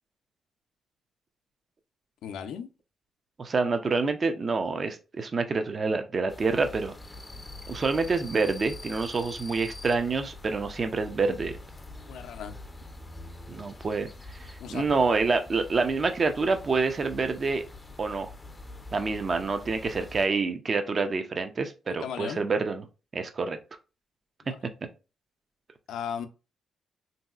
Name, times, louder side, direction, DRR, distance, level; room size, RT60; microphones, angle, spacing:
voice 1, 2.2-2.7 12.1-12.5 14.6-14.9 21.9-22.4 25.9-26.3, left 8 dB, 85° left, 0.4 m, -36 dB
voice 2, 3.4-6.9 7.7-11.6 13.5-14.1 14.4-17.6 18.0-18.3 18.9-22.8 23.1-23.6, right 4 dB, 40° right, 0.4 m, -27 dB
sound 1, 6.3-20.3, left 2 dB, 20° left, 0.4 m, -44 dB
3.0 x 2.7 x 2.3 m
cardioid pair, 90°, 0 cm